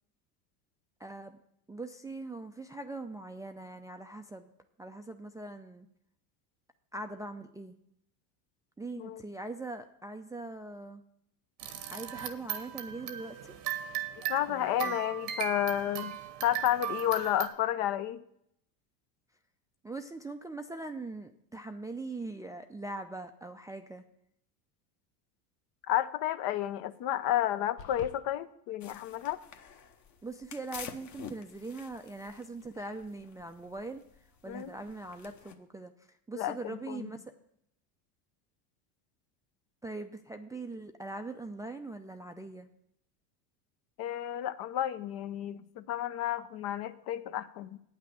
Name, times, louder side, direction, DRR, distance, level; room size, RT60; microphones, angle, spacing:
voice 1, 1.0-1.4 1.7-4.5 4.8-5.9 6.9-7.8 8.8-11.0 11.9-13.5 14.5-15.0 19.8-24.0 30.2-37.3 39.8-42.7, right 2 dB, 5° right, 5 dB, 0.4 m, -41 dB
sound 1, 11.6-17.5, right 10 dB, 85° right, 1.3 m, -38 dB
voice 2, 14.3-16.1 16.4-18.2 25.9-29.4 34.5-34.7 36.3-37.1 44.0-47.8, left 12 dB, 50° left, 12 dB, 0.8 m, -31 dB
sound 2, 27.8-28.2, left 7 dB, 75° left, 1.2 m, -45 dB
sound 3, 28.8-35.5, left 7 dB, 35° left, 1.1 m, -50 dB
8.9 x 6.0 x 7.6 m, 0.73 s
hypercardioid pair, 90°, 48 cm